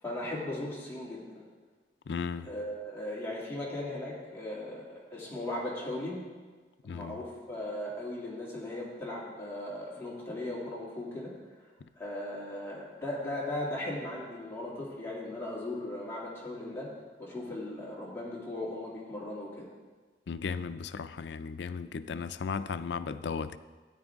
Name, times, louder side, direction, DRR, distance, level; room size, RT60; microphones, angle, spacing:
voice 1, 0.0-1.4 2.4-6.2 6.9-11.3 11.6-11.7 12.0-16.9 17.2-19.7, left 1 dB, 15° left, 2.6 m, -37 dB
voice 2, 2.1-2.5 6.8-7.2 11.8-11.9 20.3-23.6, left 5 dB, 80° left, 0.4 m, -36 dB
13.0 x 9.6 x 3.6 m
head